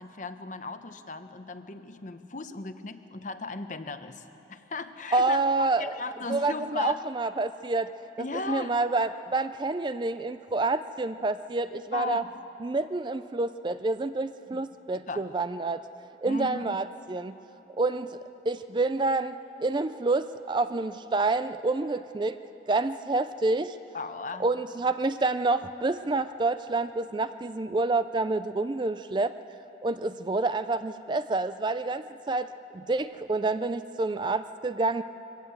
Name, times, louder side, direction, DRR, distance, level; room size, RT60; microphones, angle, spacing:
voice 1, 0.0-4.2 4.5-5.4 5.8-7.0 8.2-8.8 11.9-12.3 14.5-14.6 14.9-15.3 16.3-16.8 23.9-24.5, left 3 dB, 40° left, 9 dB, 0.9 m, -36 dB
voice 2, 5.1-5.9 6.3-7.9 8.2-12.2 12.6-15.8 16.2-17.4 17.8-18.2 18.5-22.4 22.7-23.8 24.4-29.3 29.8-32.5 32.7-35.0, right 3 dB, 25° right, 12 dB, 0.4 m, -28 dB
23.0 x 17.0 x 7.9 m, 3.0 s
head